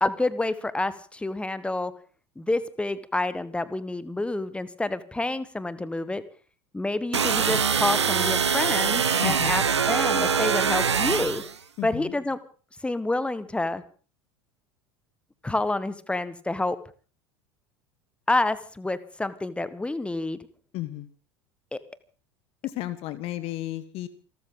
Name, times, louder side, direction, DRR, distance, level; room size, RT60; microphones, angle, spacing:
voice 1, 0.0-1.9 2.4-6.2 6.7-11.4 11.8-12.4 12.8-13.8 15.4-16.8 18.3-20.4 21.7-21.8, left 2 dB, 10° left, 15 dB, 1.4 m, -28 dB
sound 1, 7.1-11.5, right 6 dB, 80° right, 1.0 m, -23 dB
voice 2, 9.2-9.6 11.8-12.1 20.7-21.1 22.6-24.1, left 15 dB, 45° left, 13 dB, 1.3 m, -33 dB
28.0 x 13.0 x 3.9 m, 0.39 s
figure-of-eight pair, 75°, 14 cm